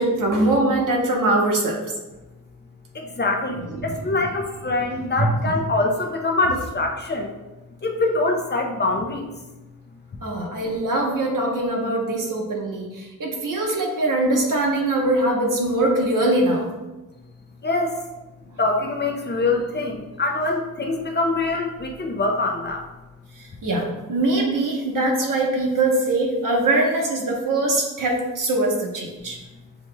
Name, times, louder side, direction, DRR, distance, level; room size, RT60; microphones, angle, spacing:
voice 1, 0.0-1.8 3.7-3.9 5.2-5.5 10.2-16.7 23.4-29.4, right 2 dB, 65° right, -1 dB, 1.1 m, -22 dB
voice 2, 2.9-7.3 7.8-9.3 17.6-18.0 18.6-22.8, left 2 dB, 30° left, 2 dB, 0.5 m, -24 dB
7.1 x 3.0 x 2.2 m, 1.1 s
wide cardioid pair, 105°, 34 cm